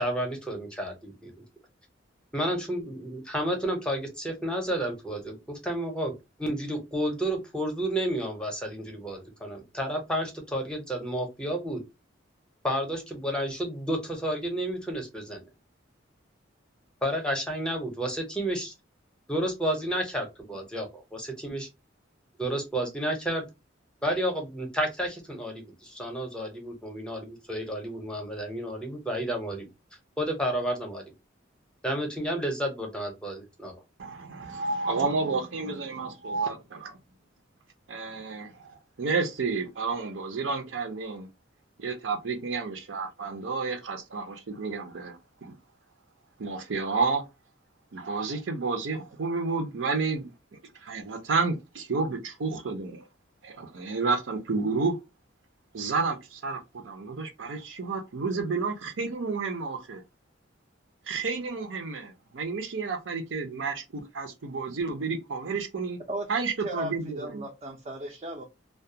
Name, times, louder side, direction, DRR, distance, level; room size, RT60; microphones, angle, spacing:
voice 1, 0.0-1.3 2.3-6.1 6.4-11.8 12.6-15.4 17.0-18.7 19.3-21.7 22.4-23.4 24.0-29.7 30.2-31.1 31.8-33.7, right 1 dB, 5° left, 0.6 m, -31 dB
voice 2, 34.0-37.0 37.9-41.3 41.8-45.5 46.4-47.2 47.9-50.3 50.8-53.1 53.4-55.0 55.7-60.0 61.1-66.0 66.3-67.4, right 4 dB, 75° right, 0.6 m, -31 dB
voice 3, 66.1-68.4, right 1 dB, 35° right, 0.4 m, -36 dB
2.3 x 2.2 x 2.6 m
head